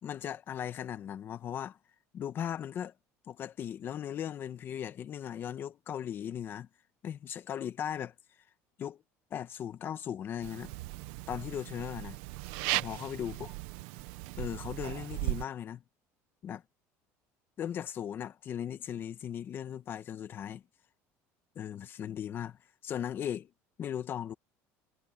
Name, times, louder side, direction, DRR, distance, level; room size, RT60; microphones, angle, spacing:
voice 1, 0.0-1.8 2.1-2.9 3.3-6.7 7.0-8.1 8.8-9.0 9.3-10.7 11.3-12.2 12.7-13.5 14.4-15.8 16.4-16.6 17.6-20.6 21.5-22.6 22.8-23.5 23.8-24.3, left 9 dB, 35° left, 1.3 m, -38 dB
sound 1, 10.4-15.4, right 20 dB, 85° right, 1.0 m, -37 dB
cardioid pair, 150°, 6 cm